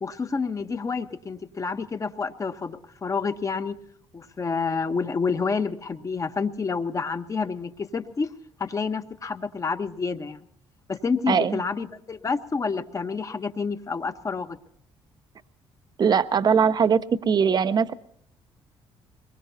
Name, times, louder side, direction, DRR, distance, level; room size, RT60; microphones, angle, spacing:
voice 1, 0.0-3.8 4.1-8.3 8.6-10.4 10.9-14.6, left 5 dB, 30° left, 9 dB, 1.0 m, -29 dB
voice 2, 11.3-11.6 16.0-17.9, right 6 dB, 40° right, 13 dB, 0.7 m, -21 dB
22.5 x 21.0 x 2.8 m, 0.70 s
cardioid pair, 95°, 11 cm